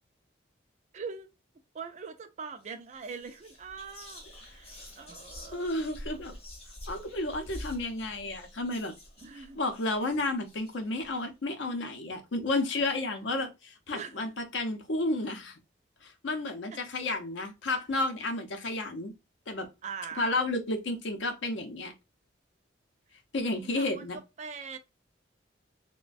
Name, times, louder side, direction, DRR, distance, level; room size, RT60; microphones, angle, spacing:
voice 1, 0.9-1.3 1.7-5.7 9.2-9.6 13.9-14.1 16.7-16.8 19.8-20.4 23.4-24.8, right 5 dB, 35° right, 0.3 m, -42 dB
Whispering, 2.5-2.7 3.0-11.1, equal, 30° left, 0.9 m, -47 dB
voice 2, 5.5-6.3 6.9-8.9 9.4-15.5 16.0-19.1 19.5-19.7 20.2-21.9 23.3-24.2, left 2 dB, 70° left, 0.6 m, -32 dB
3.1 x 2.1 x 2.4 m
head